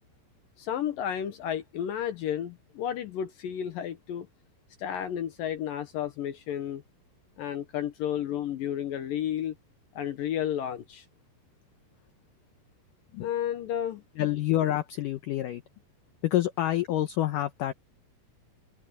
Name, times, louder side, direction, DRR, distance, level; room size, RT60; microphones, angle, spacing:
voice 1, 0.6-4.3 4.8-6.8 7.4-9.5 10.0-11.0 13.2-14.0, left 10 dB, 70° left, 2.4 m, -32 dB
voice 2, 14.2-15.6 16.2-17.7, left 13 dB, 85° left, 1.9 m, -27 dB
omnidirectional pair, 4.9 m